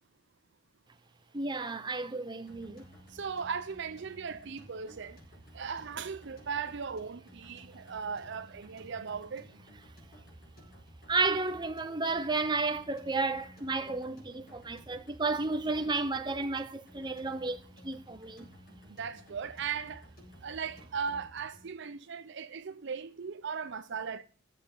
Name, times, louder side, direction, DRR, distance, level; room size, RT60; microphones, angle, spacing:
voice 1, 1.3-2.8 11.1-18.5, right 3 dB, 20° right, 0.8 m, -32 dB
sound 1, 2.5-21.7, equal, 50° left, 4.5 m, -55 dB
voice 2, 3.1-5.2 5.5-9.5 18.9-20.1 20.4-24.2, right 6 dB, 60° right, 0.6 m, -38 dB
11.5 x 7.5 x 6.7 m
head